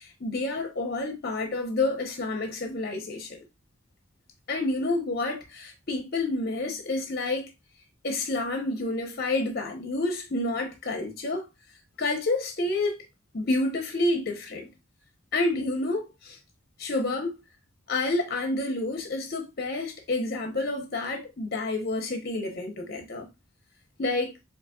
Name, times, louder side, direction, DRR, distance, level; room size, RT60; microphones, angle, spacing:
voice 1, 0.0-3.3 4.5-7.5 8.0-11.5 12.0-13.0 13.3-14.7 15.3-16.4 16.8-17.4 17.9-23.3 24.0-24.3, left 2 dB, 50° left, 0.7 m, -29 dB
4.0 x 2.9 x 2.2 m
head